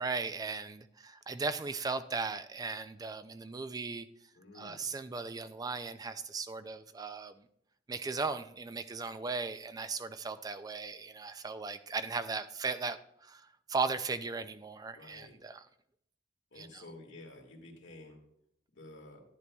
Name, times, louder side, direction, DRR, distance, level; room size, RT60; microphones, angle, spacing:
voice 1, 0.0-4.1 4.5-7.3 7.9-13.0 13.2-13.4 13.7-15.7 16.6-16.8, right 4 dB, 20° right, 11 dB, 0.3 m, -37 dB
voice 2, 4.4-4.9 14.9-15.4 16.5-18.2 18.7-19.2, left 2 dB, 85° left, 1 dB, 1.9 m, -51 dB
11.0 x 10.0 x 2.3 m, 0.71 s
head